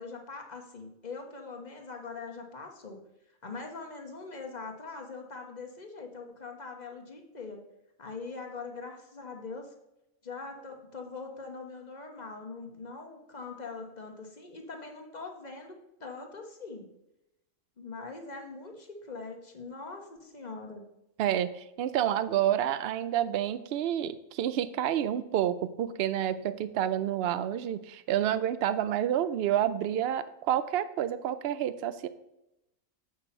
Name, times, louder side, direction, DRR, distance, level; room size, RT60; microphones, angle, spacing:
voice 1, 0.0-3.0 3.4-7.6 8.0-9.7 10.2-16.9 17.8-20.8, left 4 dB, 35° left, 3 dB, 1.3 m, -42 dB
voice 2, 21.2-32.1, right 10 dB, 60° right, 14 dB, 0.7 m, -29 dB
8.0 x 6.0 x 4.4 m, 0.89 s
omnidirectional pair, 1.4 m